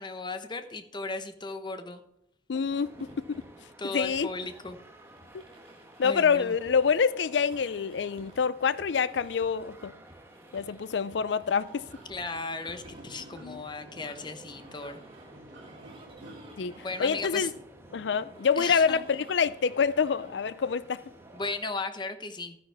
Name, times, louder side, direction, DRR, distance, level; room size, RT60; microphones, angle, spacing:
voice 1, 0.0-2.0 3.8-4.8 6.0-6.5 12.1-15.0 16.8-17.5 18.6-19.0 21.3-22.6, left 3 dB, 25° left, 0.9 m, -36 dB
voice 2, 2.5-2.9 3.2-3.4 3.9-4.3 6.0-9.9 10.5-11.8 13.4-13.6 16.6-17.5 17.9-21.0, left 6 dB, 70° left, 0.4 m, -26 dB
sound 1, 2.5-21.5, right 1 dB, 30° right, 2.3 m, -54 dB
sound 2, 2.7-21.6, right 1 dB, 15° right, 1.2 m, -54 dB
sound 3, 11.7-17.6, right 1 dB, 90° right, 2.9 m, -51 dB
12.0 x 10.0 x 3.4 m
head